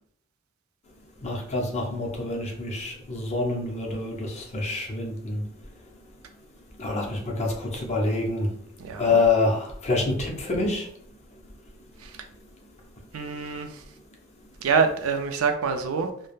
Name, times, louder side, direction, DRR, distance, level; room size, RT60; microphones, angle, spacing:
voice 1, 1.2-5.4 6.8-8.5 9.0-10.9, left 3 dB, 35° left, 0 dB, 0.6 m, -26 dB
voice 2, 8.8-9.2 12.0-12.2 13.1-13.8 14.6-16.1, right 5 dB, 80° right, 6 dB, 0.4 m, -26 dB
3.2 x 2.0 x 2.3 m, 0.66 s
head